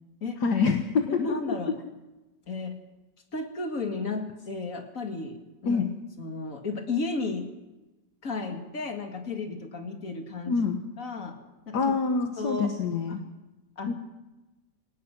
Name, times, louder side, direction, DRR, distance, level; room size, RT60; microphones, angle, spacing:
voice 1, 0.4-1.2 5.6-5.9 10.5-10.8 11.7-13.2 13.9-14.0, left 5 dB, 70° left, 5 dB, 1.8 m, -26 dB
voice 2, 1.0-1.7 2.5-2.8 3.3-5.9 6.2-7.5 8.2-10.6 11.0-11.4 11.7-11.9 12.4-12.7 13.1-13.2 13.8-13.9, left 3 dB, 50° left, 4 dB, 2.7 m, -33 dB
23.5 x 19.0 x 6.1 m, 1.1 s
omnidirectional pair, 1.9 m